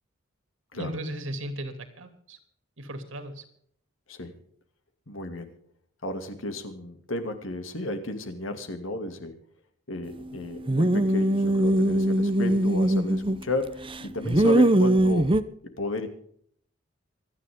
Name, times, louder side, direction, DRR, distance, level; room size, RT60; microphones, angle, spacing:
voice 1, 0.7-2.4 2.8-3.4, right 1 dB, 75° right, 7 dB, 2.8 m, -36 dB
voice 2, 5.1-5.5 6.0-9.3 9.9-15.3 15.8-16.1, left 2 dB, 75° left, 7 dB, 2.5 m, -33 dB
sound 1, 10.7-13.5 13.9-15.4, right 1 dB, 25° right, 0.7 m, -21 dB
26.0 x 9.9 x 3.7 m, 0.64 s
head